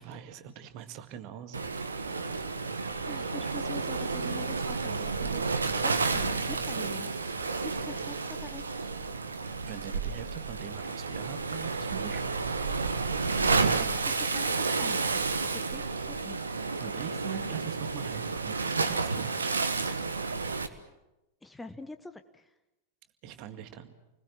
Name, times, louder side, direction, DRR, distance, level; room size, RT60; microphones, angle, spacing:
voice 1, 0.0-1.7 9.6-12.3 16.8-19.9 23.2-23.9, right 10 dB, 45° right, 9 dB, 2.0 m, -42 dB
Waves surf, 1.5-20.7, right 4 dB, 75° right, 1.4 m, -31 dB
voice 2, 3.0-5.4 5.8-8.6 13.4-15.2 15.7-16.4 21.4-22.4, left 2 dB, 10° left, 9 dB, 1.1 m, -45 dB
29.0 x 20.5 x 7.5 m, 0.97 s
figure-of-eight pair, 90°, 0 cm